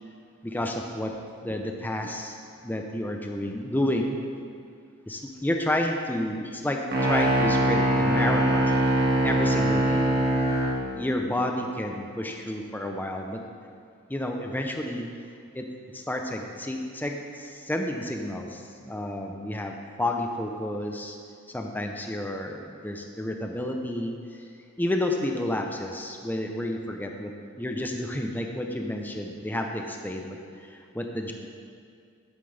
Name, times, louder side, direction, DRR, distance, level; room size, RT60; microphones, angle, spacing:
voice 1, 0.4-1.1 1.4-2.4 2.6-4.2 5.1-8.8 9.2-10.1 10.9-13.4 14.1-15.1 15.5-15.7 15.9-21.2 21.5-24.5 24.8-31.3, left 1 dB, 10° left, 3 dB, 0.6 m, -30 dB
sound 1, 6.9-10.8, right 1 dB, 50° right, 1.7 m, -22 dB
11.5 x 9.2 x 3.4 m, 2.3 s
head